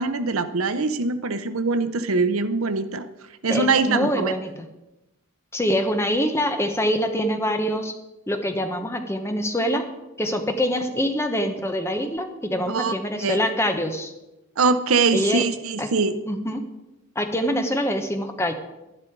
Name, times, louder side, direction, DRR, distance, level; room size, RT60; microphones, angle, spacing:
voice 1, 0.0-3.1 3.4-4.3 12.7-13.4 14.6-16.2, right 4 dB, 70° right, 11 dB, 0.7 m, -23 dB
voice 2, 3.5-4.7 5.5-7.9 8.3-9.9 10.2-14.1 15.1-15.4 15.8-15.9 16.3-16.6 17.1-18.5, equal, 10° left, 6 dB, 1.0 m, -25 dB
11.5 x 11.0 x 4.6 m, 0.98 s
head